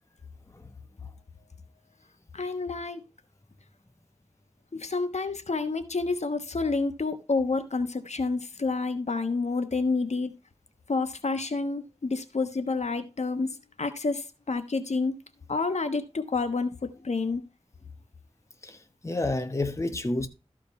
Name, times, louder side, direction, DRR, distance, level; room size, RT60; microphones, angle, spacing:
voice 1, 2.3-3.0 4.7-10.3 10.9-13.5 13.8-15.2 15.5-17.4, left 3 dB, 65° left, 1.2 m, -29 dB
voice 2, 18.6-20.3, left 2 dB, 25° left, 1.1 m, -30 dB
13.5 x 5.1 x 4.2 m
wide cardioid pair, 80°, 12 cm